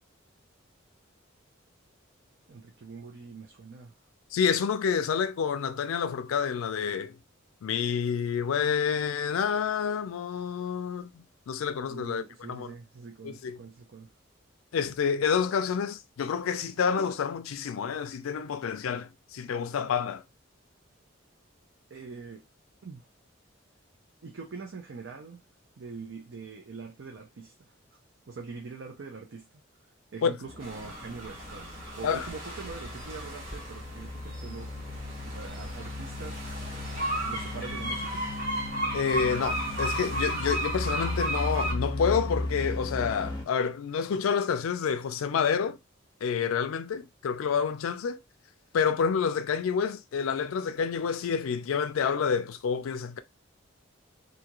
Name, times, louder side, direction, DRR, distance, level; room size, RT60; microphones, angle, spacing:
voice 1, 2.5-3.9 11.9-14.1 21.9-22.4 22.8-23.0 24.2-25.4 25.8-27.5 28.3-29.6 30.1-35.0 35.2-36.5 37.3-38.3, right 4 dB, 60° right, 0.5 m, -43 dB
voice 2, 4.3-7.2 7.6-12.7 13.2-13.6 14.7-20.2 30.2-30.4 32.0-32.3 38.9-45.8 46.2-48.2 48.7-53.2, left 6 dB, 85° left, 0.4 m, -28 dB
sound 1, 30.4-43.4, left 2 dB, 20° left, 0.9 m, -36 dB
sound 2, 30.6-41.7, right 1 dB, 40° right, 1.2 m, -35 dB
2.7 x 2.4 x 2.9 m
head